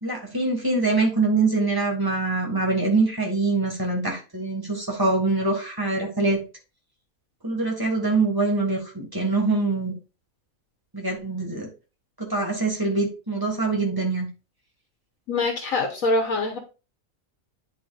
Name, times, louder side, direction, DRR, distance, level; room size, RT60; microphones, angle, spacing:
voice 1, 0.0-6.4 7.4-9.9 10.9-11.7 12.2-14.3, right 3 dB, 15° right, 0 dB, 1.7 m, -24 dB
voice 2, 15.3-16.6, left 3 dB, 70° left, 3 dB, 1.4 m, -24 dB
10.0 x 4.4 x 2.4 m, 0.32 s
omnidirectional pair, 1.5 m